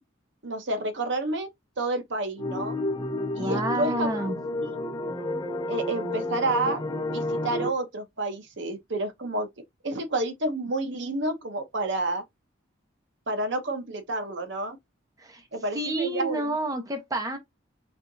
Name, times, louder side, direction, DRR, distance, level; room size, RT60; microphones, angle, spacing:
voice 1, 0.4-1.5 1.8-2.8 3.3-4.3 4.6-4.8 5.7-9.5 9.8-12.2 13.3-14.8 15.5-16.6, right 2 dB, 60° right, 0.9 m, -30 dB
sound 1, 2.4-7.7, left 1 dB, 20° left, 0.7 m, -31 dB
voice 2, 3.4-4.4 15.2-15.4 15.7-17.4, right 2 dB, 20° right, 0.8 m, -29 dB
4.4 x 3.4 x 2.7 m
head